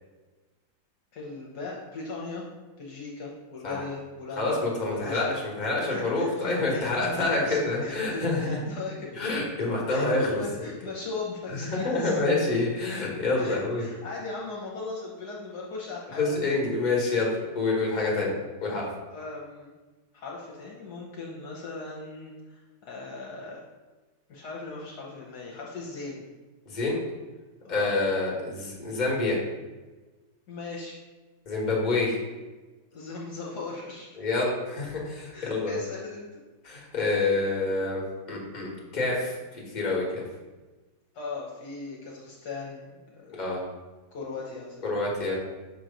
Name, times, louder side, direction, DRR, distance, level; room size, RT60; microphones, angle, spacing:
voice 1, 1.1-2.4 2.8-5.4 5.9-9.1 9.9-12.2 13.4-16.6 17.9-18.2 19.1-19.7 20.1-23.6 24.3-26.2 27.6-27.9 30.5-31.0 32.9-34.1 35.3-36.4 41.1-43.5 44.1-44.9, left 3 dB, 65° left, -3 dB, 1.3 m, -38 dB
voice 2, 4.4-8.6 9.1-10.4 11.6-13.9 16.2-18.3 18.6-18.9 26.7-27.0 27.7-29.4 31.4-32.2 34.2-35.8 36.6-38.0 38.3-40.2 43.3-43.6 44.8-45.4, left 3 dB, 25° left, -3 dB, 1.3 m, -27 dB
6.3 x 3.1 x 5.1 m, 1.2 s
omnidirectional pair, 2.0 m